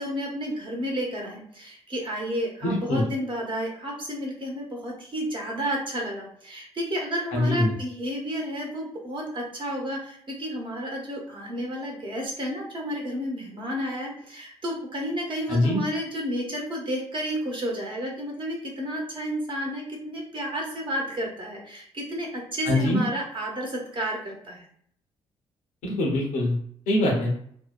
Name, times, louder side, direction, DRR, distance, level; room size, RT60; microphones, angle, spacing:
voice 1, 0.0-24.6, equal, 35° right, -1 dB, 1.1 m, -31 dB
voice 2, 2.6-3.0 7.3-7.7 15.5-15.8 22.7-23.0 25.8-26.6 26.9-27.3, left 1 dB, 60° left, -1 dB, 0.7 m, -23 dB
2.6 x 2.1 x 2.4 m, 0.63 s
figure-of-eight pair, 40°, 14 cm